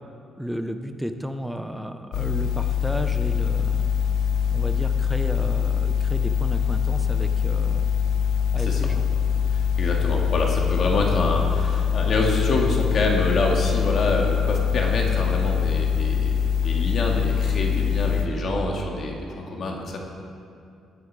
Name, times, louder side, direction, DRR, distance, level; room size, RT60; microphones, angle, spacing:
voice 1, 0.4-3.9 4.5-7.9 8.5-9.0, equal, ahead, 7 dB, 0.9 m, -33 dB
sound 1, 2.1-18.3, left 7 dB, 80° left, 1.2 m, -23 dB
voice 2, 9.5-20.0, left 2 dB, 50° left, 0 dB, 2.1 m, -26 dB
19.0 x 10.0 x 4.9 m, 2.5 s
cardioid pair, 110°, 0 cm